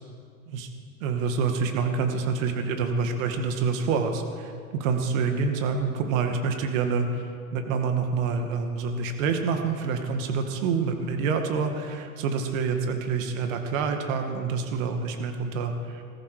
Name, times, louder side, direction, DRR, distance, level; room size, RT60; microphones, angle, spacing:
voice 1, 1.0-16.0, right 5 dB, 60° right, 5 dB, 2.2 m, -27 dB
19.5 x 14.5 x 5.0 m, 2.3 s
hypercardioid pair, 110°, 45 cm